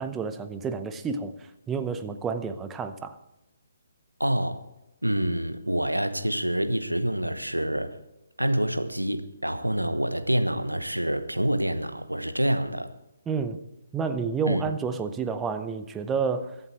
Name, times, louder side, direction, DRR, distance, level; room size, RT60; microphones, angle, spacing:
voice 1, 0.0-1.3 1.7-3.2 13.3-13.6 13.9-16.6, right 5 dB, 10° right, 0.8 m, -30 dB
voice 2, 4.2-4.6 5.0-8.0 8.4-12.9 14.5-14.6, right 1 dB, 85° right, 1.1 m, -27 dB
23.0 x 8.1 x 4.5 m
figure-of-eight pair, 135°, 0 cm